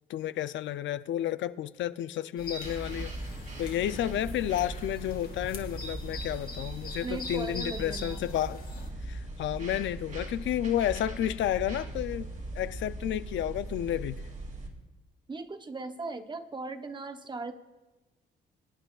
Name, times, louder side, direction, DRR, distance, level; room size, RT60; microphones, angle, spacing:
voice 1, 0.1-3.1 3.6-8.6 9.0-12.3 12.5-14.2, left 12 dB, 70° left, 0.4 m, -31 dB
sound 1, 2.4-8.9, left 3 dB, 45° left, 1.8 m, -43 dB
sound 2, 2.6-14.7, right 2 dB, 40° right, 2.4 m, -39 dB
voice 2, 7.0-8.3 15.3-17.5, right 3 dB, 25° right, 0.8 m, -38 dB
24.5 x 9.0 x 2.4 m
cardioid pair, 90°, 20 cm